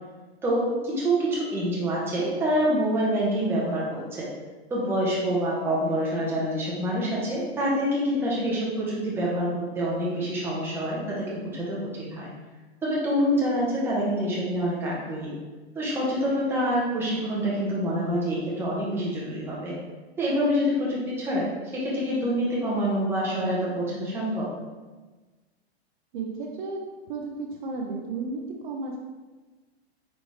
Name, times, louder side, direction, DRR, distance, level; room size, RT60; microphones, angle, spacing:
voice 1, 0.4-4.3 4.7-12.3 12.8-15.3 15.7-19.7 20.2-21.5 21.7-24.5, equal, 5° right, -7 dB, 0.8 m, -26 dB
voice 2, 26.1-26.8 27.1-29.0, right 3 dB, 50° right, 0 dB, 0.6 m, -33 dB
4.1 x 3.2 x 3.2 m, 1.3 s
supercardioid pair, 155°, 32 cm